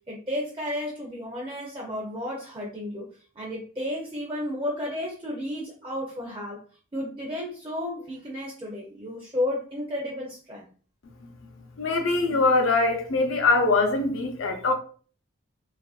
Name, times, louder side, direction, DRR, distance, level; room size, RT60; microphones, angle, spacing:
voice 1, 0.1-3.0 3.4-6.6 6.9-10.7, left 1 dB, 25° right, 0.5 m, -32 dB
voice 2, 11.8-14.7, left 3 dB, 65° left, 0.6 m, -22 dB
2.9 x 2.5 x 2.3 m
head